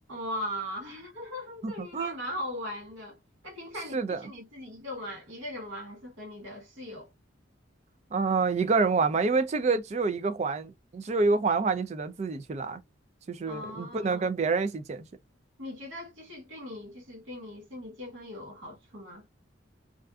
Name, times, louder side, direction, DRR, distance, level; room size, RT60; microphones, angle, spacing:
voice 1, 0.1-3.2 3.4-7.1 13.5-14.3 15.6-19.2, left 1 dB, 80° right, 1.0 m, -39 dB
voice 2, 1.6-2.2 3.9-4.2 8.1-12.8 13.3-15.1, right 4 dB, 35° right, 0.3 m, -27 dB
2.4 x 2.4 x 2.2 m
head